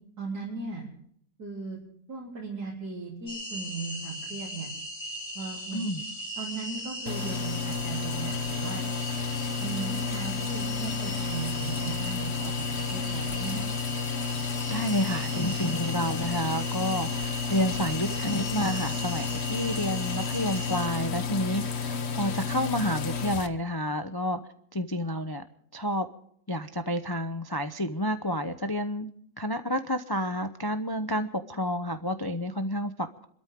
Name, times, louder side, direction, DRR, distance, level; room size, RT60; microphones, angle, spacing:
voice 1, 0.2-0.9 1.4-1.8 2.1-4.7 5.4-5.9 6.4-8.8 9.6-13.7, right 4 dB, 60° right, -5 dB, 4.2 m, -37 dB
sound 1, 3.3-20.9, left 1 dB, 70° left, 4.9 m, -38 dB
sound 2, 7.1-23.5, left 5 dB, 45° left, 1.0 m, -32 dB
voice 2, 14.7-24.4 24.7-25.4 25.7-26.1 26.5-29.1 29.4-33.3, equal, 25° left, 8 dB, 0.4 m, -30 dB
28.0 x 13.5 x 3.7 m, 0.66 s
omnidirectional pair, 1.9 m